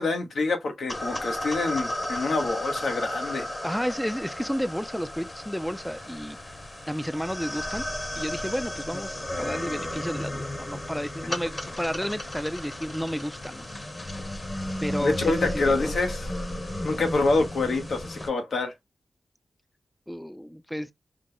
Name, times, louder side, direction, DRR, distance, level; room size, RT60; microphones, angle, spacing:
voice 1, 0.0-3.5 15.0-16.3 16.8-18.7, left 3 dB, 80° left, 1.0 m, -26 dB
sound 1, 0.9-18.3, left 1 dB, 30° left, 1.0 m, -34 dB
voice 2, 3.6-6.4 6.9-7.8 8.2-13.6 14.8-15.9 20.1-20.9, equal, 5° left, 0.4 m, -32 dB
4.9 x 2.1 x 3.8 m
wide cardioid pair, 85°, 0 cm